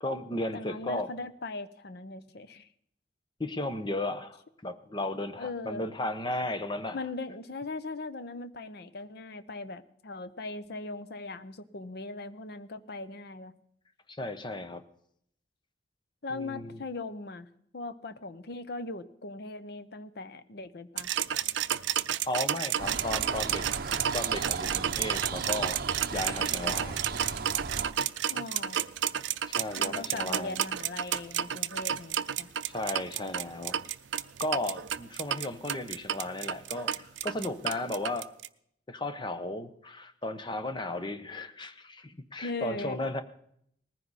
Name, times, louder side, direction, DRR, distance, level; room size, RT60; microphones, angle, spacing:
voice 1, 0.0-1.1 3.4-7.0 14.1-14.8 16.3-16.8 22.3-23.7 24.1-25.8 26.1-27.0 29.5-30.6 32.7-33.8 34.4-38.3 38.9-43.2, left 1 dB, 25° left, 10 dB, 0.9 m, -35 dB
voice 2, 0.5-2.7 5.4-5.9 6.9-13.6 16.2-17.5 17.7-21.1 28.3-28.8 29.8-32.5 42.4-43.0, left 3 dB, 60° left, 13 dB, 0.8 m, -39 dB
sound 1, 21.0-38.5, right 10 dB, 80° right, 0.5 m, -31 dB
sound 2, 22.8-27.9, right 4 dB, 55° right, 0.8 m, -36 dB
19.5 x 14.5 x 4.1 m, 0.68 s
head